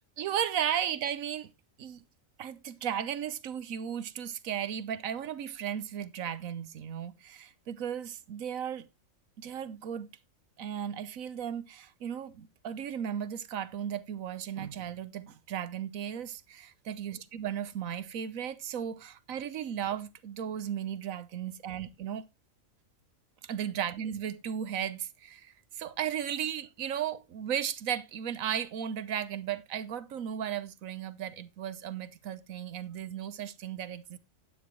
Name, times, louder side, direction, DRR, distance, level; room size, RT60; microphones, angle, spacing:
voice 1, 0.2-1.5 1.8-2.0 2.4-8.9 9.4-10.1 10.6-22.3 23.4-34.2, right 9 dB, 75° right, 1.2 m, -35 dB
11.5 x 9.4 x 3.1 m
omnidirectional pair, 1.4 m